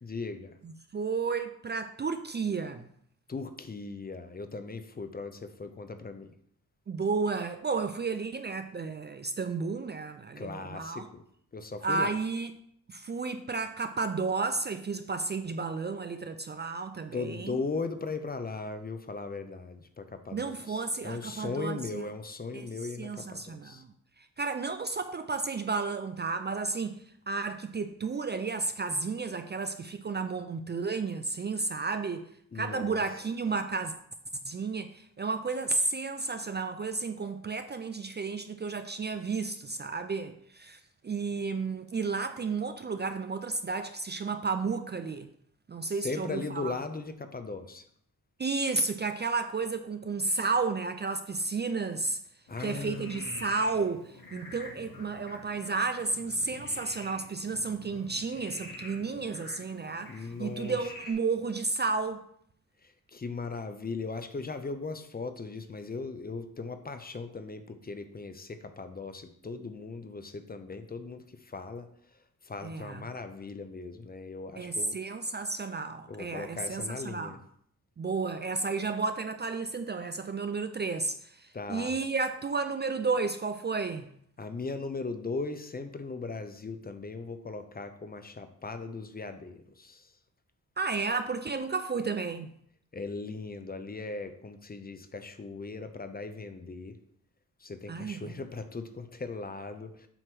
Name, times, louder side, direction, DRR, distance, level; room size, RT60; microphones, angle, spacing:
voice 1, 0.0-0.5 3.3-6.3 10.4-11.2 11.5-12.1 17.1-23.8 32.5-33.0 45.9-47.8 52.5-53.4 60.1-60.8 63.1-71.9 72.4-75.0 76.1-77.4 81.5-82.0 84.4-90.1 92.9-97.0 97.6-100.1, left 3 dB, 25° left, 0.6 m, -38 dB
voice 2, 0.6-2.9 6.9-11.1 11.8-12.5 12.9-17.6 20.3-22.1 22.5-22.7 23.0-23.9 24.4-32.2 32.5-33.9 34.5-45.3 45.7-46.8 48.4-52.2 52.6-62.2 72.6-73.0 74.6-77.3 78.0-84.1 90.8-92.5 97.9-98.3, right 4 dB, 30° right, 0.4 m, -32 dB
Frog, 52.5-61.1, left 2 dB, 75° left, 2.0 m, -47 dB
7.8 x 3.0 x 6.0 m
wide cardioid pair, 115°, 35 cm